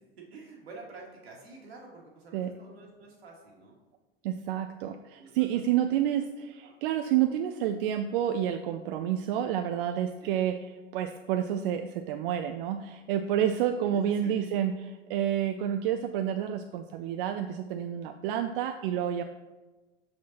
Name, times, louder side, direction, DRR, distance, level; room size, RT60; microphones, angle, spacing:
voice 1, 0.0-3.8 5.2-6.2 6.6-6.7 10.2-10.3 13.9-14.3, right 3 dB, 75° right, -1 dB, 1.8 m, -49 dB
voice 2, 4.2-10.6 10.9-19.2, right 10 dB, 60° right, 7 dB, 0.4 m, -29 dB
6.4 x 5.9 x 2.8 m, 1.2 s
hypercardioid pair, 85°, 31 cm